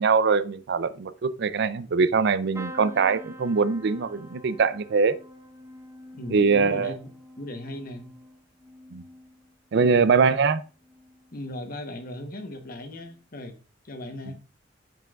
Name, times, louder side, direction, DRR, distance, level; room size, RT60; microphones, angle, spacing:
voice 1, 0.0-5.2 6.3-7.0 8.9-9.0 9.7-10.6 14.3-14.4, right 5 dB, 65° right, 0.4 m, -22 dB
sound 1, 2.5-10.4 10.8-11.4 12.6-12.8 13.1-13.2, equal, 15° right, 0.6 m, -46 dB
voice 2, 6.1-7.1 7.4-8.1 9.8-10.1 11.3-13.5 13.8-14.4, left 1 dB, 50° left, 1.0 m, -37 dB
6.8 x 6.1 x 2.4 m
head